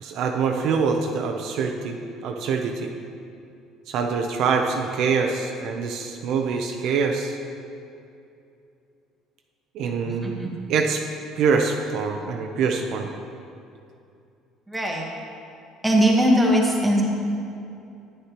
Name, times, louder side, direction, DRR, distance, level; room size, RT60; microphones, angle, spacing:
voice 1, 0.0-2.9 3.9-7.4 9.7-11.0 11.4-13.1, right 5 dB, 55° right, 3 dB, 0.6 m, -25 dB
voice 2, 14.7-15.1 15.8-17.0, equal, 5° right, -3 dB, 1.2 m, -20 dB
9.9 x 9.7 x 2.9 m, 2.6 s
cardioid pair, 155°, 0 cm